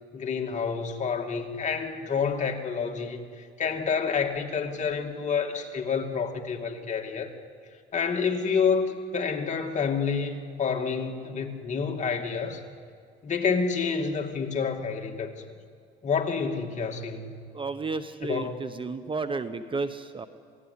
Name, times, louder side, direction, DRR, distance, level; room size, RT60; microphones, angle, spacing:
voice 1, 0.1-7.3 7.9-12.6 13.2-15.3 16.0-17.4 18.2-18.5, left 5 dB, 35° left, 3 dB, 2.4 m, -28 dB
voice 2, 17.5-20.3, right 4 dB, 25° right, 11 dB, 0.9 m, -32 dB
27.0 x 18.0 x 9.7 m, 2.1 s
cardioid pair, 115°, 20 cm